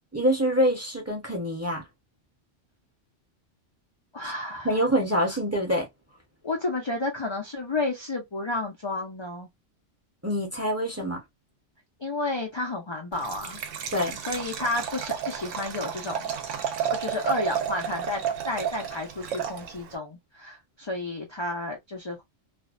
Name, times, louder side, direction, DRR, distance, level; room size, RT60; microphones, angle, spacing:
voice 1, 0.1-1.8 4.6-5.9 10.2-11.2 13.9-14.2, equal, 15° right, 0.6 m, -25 dB
voice 2, 4.1-4.8 6.4-9.5 12.0-13.6 14.3-16.4 16.9-22.2, left 2 dB, 45° left, 0.3 m, -31 dB
Liquid, 13.1-20.0, right 8 dB, 75° right, 0.9 m, -32 dB
2.5 x 2.1 x 2.4 m
omnidirectional pair, 1.3 m